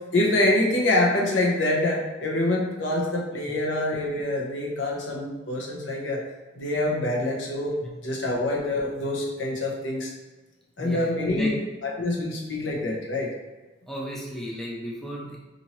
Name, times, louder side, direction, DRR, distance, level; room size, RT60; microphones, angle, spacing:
voice 1, 0.1-6.2 6.5-10.1 10.8-11.5 11.8-13.3, left 1 dB, 85° left, -2 dB, 0.8 m, -25 dB
voice 2, 10.8-11.5 12.2-12.3 13.9-15.4, equal, ahead, -4 dB, 0.5 m, -35 dB
4.2 x 2.7 x 2.9 m, 1.1 s
head